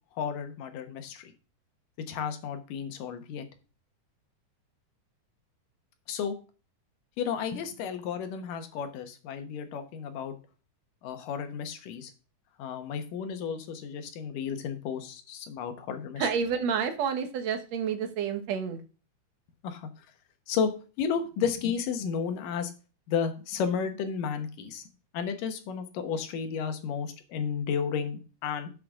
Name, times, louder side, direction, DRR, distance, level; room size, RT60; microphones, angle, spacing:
voice 1, 0.2-1.3 2.1-3.5 6.1-6.4 7.2-10.4 11.0-12.1 12.6-16.3 19.6-19.9 20.5-22.7 23.1-24.8 25.1-28.7, left 7 dB, 85° left, 7 dB, 2.9 m, -32 dB
voice 2, 16.2-18.8, right 7 dB, 60° right, 7 dB, 2.2 m, -29 dB
11.5 x 7.8 x 3.7 m, 0.34 s
omnidirectional pair, 3.7 m